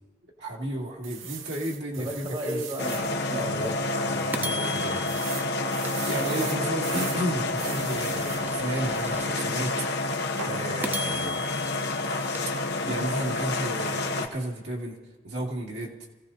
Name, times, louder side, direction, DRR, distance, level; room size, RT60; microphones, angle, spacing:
voice 1, 0.4-2.6 6.1-9.7 10.4-11.8 12.8-15.0 15.2-15.9, right 1 dB, 60° right, -3 dB, 2.4 m, -32 dB
sound 1, 1.0-3.1 3.6-3.7 4.0-4.1 5.1-7.2 7.6-8.5 10.4-10.6, right 8 dB, 85° right, 0.9 m, -39 dB
voice 2, 2.0-3.8 4.1-5.1, equal, 25° right, -1 dB, 1.7 m, -35 dB
sound 2, 2.8-14.3, left 2 dB, 55° left, 1.1 m, -29 dB
sound 3, 3.0-3.1 3.6-3.7 4.3-6.7 7.2-9.6 10.1-10.2 10.8-13.2, equal, 10° right, 0.4 m, -38 dB
27.5 x 16.0 x 2.8 m, 1.2 s
head